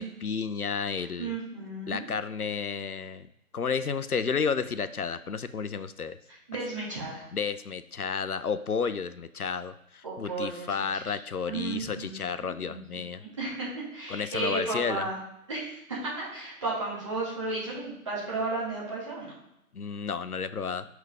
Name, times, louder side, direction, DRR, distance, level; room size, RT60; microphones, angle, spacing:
voice 1, 0.0-1.3 1.9-3.3 3.5-6.2 7.3-13.2 14.1-15.1 19.7-20.9, left 5 dB, 80° left, 12 dB, 0.7 m, -32 dB
voice 2, 1.0-2.1 6.3-7.2 10.0-11.1 11.5-12.8 13.2-15.2 15.5-19.3, right 3 dB, 20° right, -7 dB, 2.2 m, -34 dB
5.5 x 4.7 x 4.9 m, 0.84 s
figure-of-eight pair, 160°, 43 cm